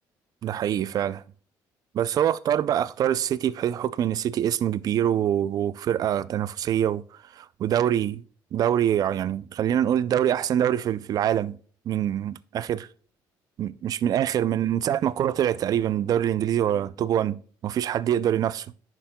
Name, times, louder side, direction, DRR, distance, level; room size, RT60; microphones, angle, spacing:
voice 1, 0.4-1.2 1.9-7.0 7.3-8.2 8.5-11.6 11.9-12.9 13.6-18.7, right 10 dB, 50° right, 0.4 m, -25 dB
10.0 x 6.1 x 2.2 m
cardioid pair, 120°, 8 cm